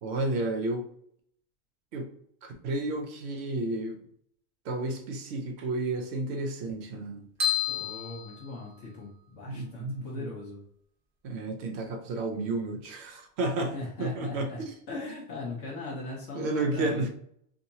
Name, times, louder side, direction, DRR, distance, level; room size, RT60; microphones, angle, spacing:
voice 1, 0.0-0.9 1.9-2.1 2.4-4.0 4.6-7.3 9.5-10.3 11.2-13.7 14.0-14.7 16.3-17.1, right 2 dB, 70° right, 4 dB, 0.9 m, -31 dB
sound 1, 7.4-9.2, left 8 dB, 50° right, 1.1 m, -31 dB
voice 2, 7.7-10.6 13.7-17.1, left 3 dB, 85° left, -5 dB, 1.2 m, -40 dB
3.7 x 2.7 x 2.7 m, 0.68 s
omnidirectional pair, 1.2 m